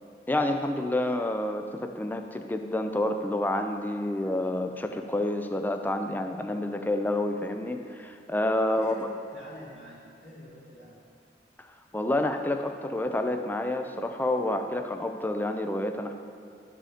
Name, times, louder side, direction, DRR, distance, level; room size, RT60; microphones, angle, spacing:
voice 1, 0.3-8.9 11.9-16.1, left 1 dB, 10° left, 6 dB, 0.4 m, -29 dB
voice 2, 6.4-6.7 8.7-9.0 9.3-11.0, equal, 65° left, -7 dB, 2.3 m, -47 dB
11.5 x 5.0 x 5.0 m, 2.4 s
head